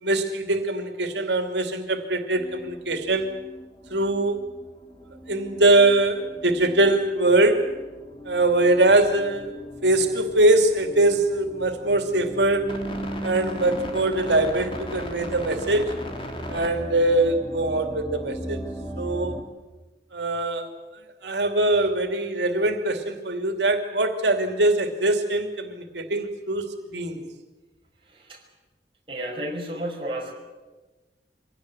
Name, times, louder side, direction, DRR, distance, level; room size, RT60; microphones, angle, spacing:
voice 1, 0.0-3.3 3.9-4.4 5.3-7.7 8.2-9.5 9.8-12.7 13.2-15.9 16.5-18.6 19.0-19.4 20.1-20.7 21.2-27.2, right 2 dB, 90° right, 6 dB, 2.8 m, -22 dB
sound 1, 2.4-19.4, equal, 30° left, 3.2 m, -37 dB
voice 2, 28.1-28.4 29.1-30.3, right 1 dB, 30° right, -1 dB, 5.7 m, -32 dB
25.0 x 18.0 x 9.8 m, 1.2 s
head